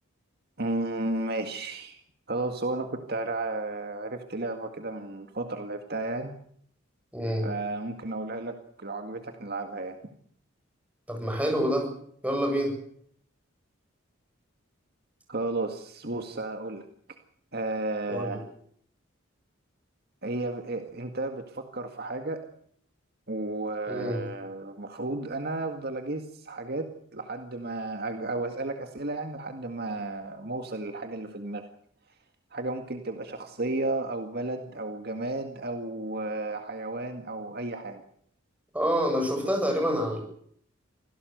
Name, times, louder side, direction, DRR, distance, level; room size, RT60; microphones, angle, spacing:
voice 1, 0.6-2.0 2.3-6.3 7.4-10.0 15.3-16.9 17.5-18.4 20.2-22.4 23.3-31.6 32.5-38.0, right 2 dB, 50° right, 5 dB, 2.0 m, -33 dB
voice 2, 7.1-7.5 11.1-11.9 12.2-12.7 18.1-18.4 23.9-24.2 38.7-40.2, equal, 5° right, 2 dB, 8.0 m, -27 dB
26.0 x 17.0 x 8.0 m, 0.64 s
head